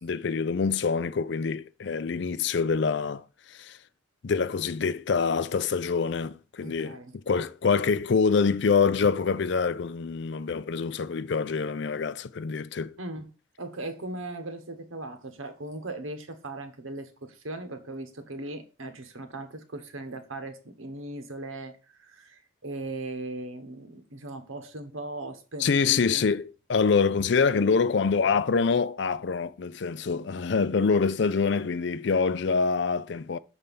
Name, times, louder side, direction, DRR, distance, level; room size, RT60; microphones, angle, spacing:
voice 1, 0.0-3.8 4.2-12.9 25.6-33.4, left 5 dB, 60° left, 0.4 m, -25 dB
voice 2, 6.6-7.1 13.0-13.3 13.6-21.8 22.0-26.3, right 2 dB, 85° right, 1.2 m, -38 dB
6.8 x 4.5 x 5.4 m
head